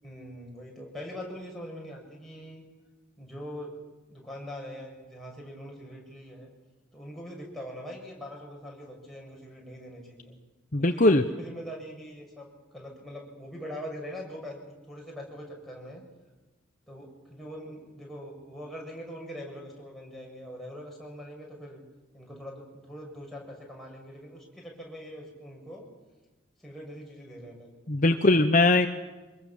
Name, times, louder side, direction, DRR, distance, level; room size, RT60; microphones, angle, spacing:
voice 1, 0.0-2.6 3.2-3.7 4.1-6.5 6.9-10.4 10.9-14.6 14.9-16.0 16.9-21.8 22.1-25.8 26.6-27.7 28.3-28.4, equal, ahead, -3 dB, 6.9 m, -42 dB
voice 2, 10.7-11.2 27.9-28.9, left 2 dB, 40° left, 7 dB, 1.0 m, -20 dB
25.0 x 21.5 x 7.4 m, 1.2 s
head